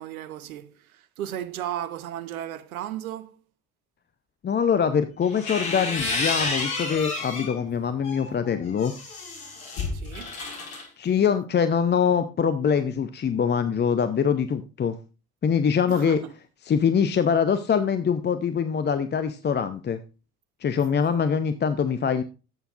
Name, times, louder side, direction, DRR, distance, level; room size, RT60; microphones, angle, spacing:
voice 1, 0.0-3.4 9.9-10.4 15.9-16.3 21.1-21.2, right 11 dB, 75° right, 0.8 m, -35 dB
voice 2, 4.4-8.9 11.0-15.0 15.4-16.2 16.6-20.0 20.6-22.2, left 7 dB, 25° left, 0.7 m, -23 dB
sound 1, 5.2-7.5 8.0-10.8, left 3 dB, 75° left, 2.1 m, -30 dB
11.5 x 8.1 x 2.5 m
figure-of-eight pair, 50°, 42 cm